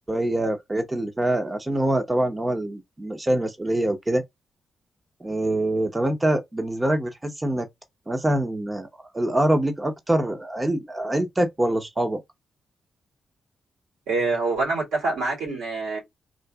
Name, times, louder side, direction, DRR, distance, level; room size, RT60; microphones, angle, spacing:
voice 1, 0.1-4.2 5.2-7.7 8.1-8.9 9.1-12.2, right 1 dB, 20° right, 0.8 m, -24 dB
voice 2, 14.1-16.0, right 3 dB, 85° right, 2.7 m, -25 dB
3.8 x 2.5 x 2.3 m
cardioid pair, 65°, 0 cm